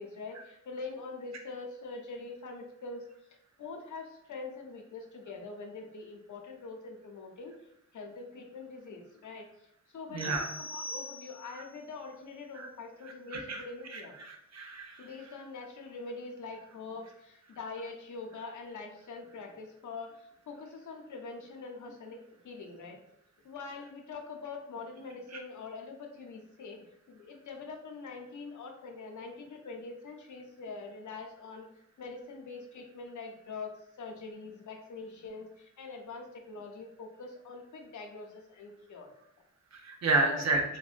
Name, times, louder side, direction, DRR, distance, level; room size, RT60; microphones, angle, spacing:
voice 1, 0.0-3.0 3.6-7.5 7.9-14.1 15.0-23.0 23.4-31.7 32.0-39.1 40.2-40.6, left 4 dB, 80° left, 2 dB, 0.6 m, -44 dB
voice 2, 10.1-10.4 11.5-11.6 12.5-12.7 13.0-13.6 13.9-15.1 39.7-40.6, right 3 dB, 60° right, 2 dB, 0.6 m, -31 dB
sound 1, 10.2-11.7, left 1 dB, 5° right, 0.4 m, -42 dB
3.5 x 2.1 x 2.4 m, 0.78 s
wide cardioid pair, 175°, 30 cm